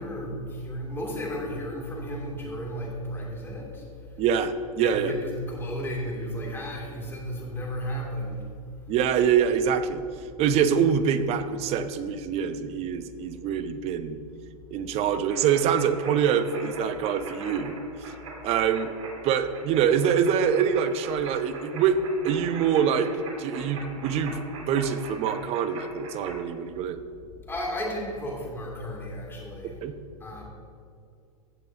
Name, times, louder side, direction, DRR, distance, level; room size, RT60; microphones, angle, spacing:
voice 1, 0.0-4.3 4.8-8.5 27.5-29.8 30.2-30.4, equal, 10° left, -3 dB, 2.5 m, -34 dB
voice 2, 4.2-5.1 8.9-10.0 10.4-14.2 14.7-17.8 18.4-18.9 19.2-23.1 23.4-27.0 29.8-30.0, right 7 dB, 35° right, 11 dB, 0.6 m, -25 dB
sound 1, 15.3-26.4, right 2 dB, 60° right, 2.5 m, -42 dB
15.0 x 7.8 x 2.7 m, 2.4 s
hypercardioid pair, 105°, 19 cm